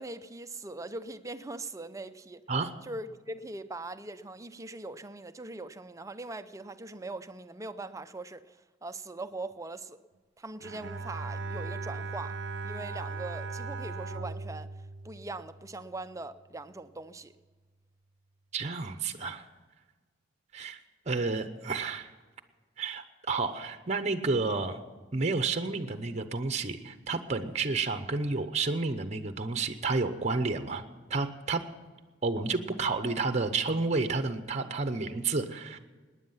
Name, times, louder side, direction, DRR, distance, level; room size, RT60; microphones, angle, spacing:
voice 1, 0.0-2.4 2.8-8.6 8.8-10.0 10.4-14.7 15.0-17.3, right 2 dB, 15° right, 0.5 m, -41 dB
Bowed string instrument, 10.6-15.9, right 3 dB, 70° right, 0.7 m, -38 dB
voice 2, 18.5-19.4 20.5-20.8 21.1-22.1 22.8-24.8 25.1-30.8 31.1-31.6 32.2-35.8, right 3 dB, 35° right, 0.8 m, -30 dB
19.0 x 9.9 x 5.6 m
head